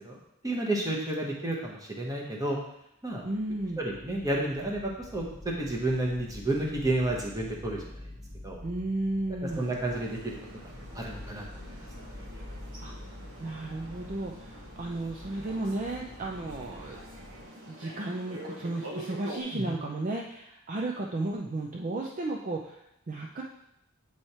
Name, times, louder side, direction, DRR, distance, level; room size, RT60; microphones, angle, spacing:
voice 1, 0.4-2.6 3.0-3.2 3.8-7.8 8.4-8.6 9.6-10.4 10.9-11.4 19.5-19.8, right 1 dB, 15° right, -1 dB, 0.9 m, -31 dB
sound 1, 3.2-17.4, left 1 dB, 20° left, 0.7 m, -47 dB
voice 2, 3.2-3.8 8.6-9.7 12.8-12.9 13.4-17.0 17.7-23.4, right 2 dB, 35° right, -1 dB, 0.4 m, -34 dB
sound 2, 9.4-19.4, right 1 dB, 70° right, 1.0 m, -46 dB
7.8 x 3.2 x 4.2 m, 0.80 s
head